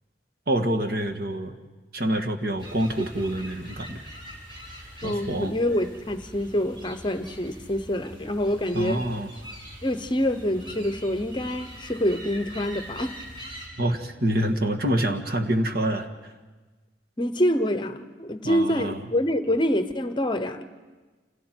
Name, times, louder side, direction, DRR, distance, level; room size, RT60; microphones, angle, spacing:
voice 1, 0.5-1.6 1.9-4.0 5.0-5.5 8.7-9.3 13.8-16.1 18.4-19.0, right 1 dB, 55° right, 4 dB, 1.7 m, -26 dB
sound 1, 2.6-13.7, equal, 30° right, 6.2 m, -43 dB
voice 2, 5.0-9.0 9.8-13.2 17.2-20.7, equal, 25° left, 10 dB, 0.9 m, -26 dB
29.0 x 28.0 x 4.5 m, 1.3 s
head